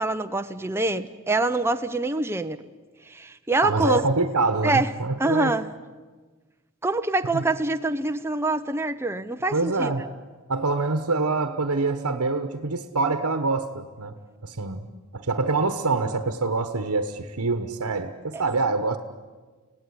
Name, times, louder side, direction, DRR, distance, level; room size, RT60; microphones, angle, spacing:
voice 1, 0.0-2.6 3.1-4.1 4.6-4.9 5.2-5.7 6.8-9.9, right 2 dB, 10° right, 7 dB, 0.7 m, -25 dB
voice 2, 3.6-5.5 7.3-7.4 9.5-10.1 10.5-14.1 14.4-14.9 15.1-19.0, right 3 dB, 90° right, 7 dB, 1.3 m, -25 dB
26.0 x 17.5 x 9.7 m, 1.4 s
head